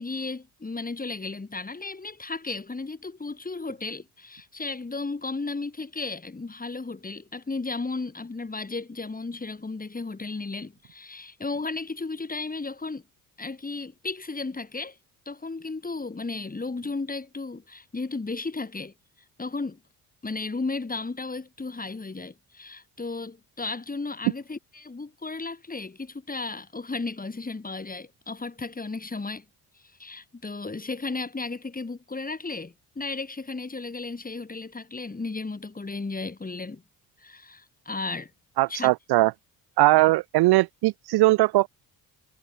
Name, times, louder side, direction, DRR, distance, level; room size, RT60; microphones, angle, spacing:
voice 1, 0.0-13.0 13.4-15.0 15.3-18.9 19.4-19.8 20.2-29.4 30.0-36.8 37.2-38.3 38.7-38.9, left 3 dB, 20° left, 2.5 m, -34 dB
voice 2, 38.6-39.3 39.8-41.7, right 19 dB, 65° right, 0.5 m, -20 dB
supercardioid pair, 70°, 41 cm